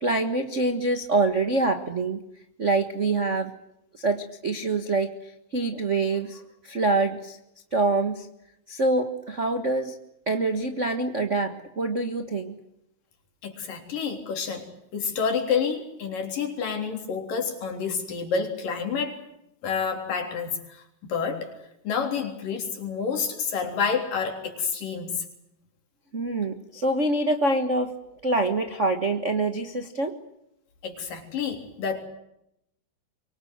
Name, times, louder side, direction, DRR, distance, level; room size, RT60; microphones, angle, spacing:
voice 1, 0.0-2.2 2.6-3.5 3.9-7.4 7.7-8.3 8.7-9.9 10.3-12.6 26.1-27.9 28.2-30.1, right 2 dB, 90° right, 7 dB, 0.6 m, -25 dB
voice 2, 13.4-19.2 19.6-21.5 21.9-25.3 30.8-32.0, left 6 dB, 70° left, 4 dB, 5.2 m, -29 dB
24.5 x 23.5 x 8.0 m, 0.82 s
omnidirectional pair, 4.1 m